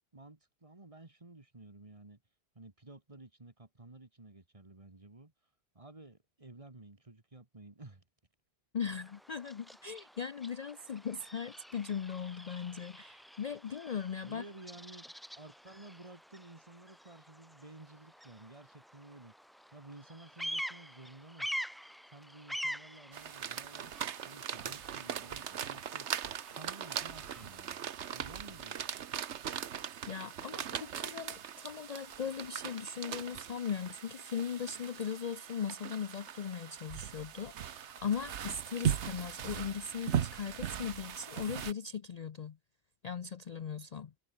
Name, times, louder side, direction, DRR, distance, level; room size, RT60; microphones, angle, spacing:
voice 1, 0.1-2.2 2.6-5.3 5.7-8.0 14.2-19.3 19.7-21.5 22.1-26.1 26.5-27.8 28.1-29.0, right 2 dB, 30° right, 2.1 m, -53 dB
voice 2, 8.7-14.4 30.1-42.6 43.0-44.1, left 6 dB, 45° left, 0.6 m, -39 dB
Bird vocalization bird call bird song, 8.8-27.6, equal, ahead, 2.5 m, -46 dB
sound 1, 23.1-41.7, right 9 dB, 85° right, 1.2 m, -39 dB
omnidirectional pair, 1.1 m